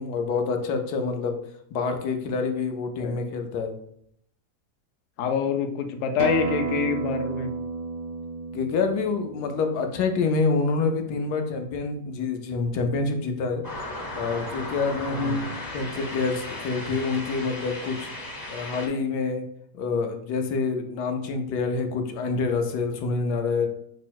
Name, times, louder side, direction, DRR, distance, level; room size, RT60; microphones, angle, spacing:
voice 1, 0.0-1.4 1.7-3.7 8.5-13.6 14.1-15.5 15.7-18.1 18.5-19.4 19.7-23.7, left 4 dB, 90° left, 5 dB, 1.2 m, -27 dB
voice 2, 5.2-7.5 15.1-15.4, left 7 dB, 65° left, 6 dB, 0.8 m, -26 dB
Acoustic guitar, 6.2-11.4, right 4 dB, 75° right, 0.5 m, -33 dB
sound 1, 13.6-18.9, left 1 dB, 30° left, 0.4 m, -36 dB
5.2 x 2.1 x 4.5 m, 0.68 s
omnidirectional pair, 1.7 m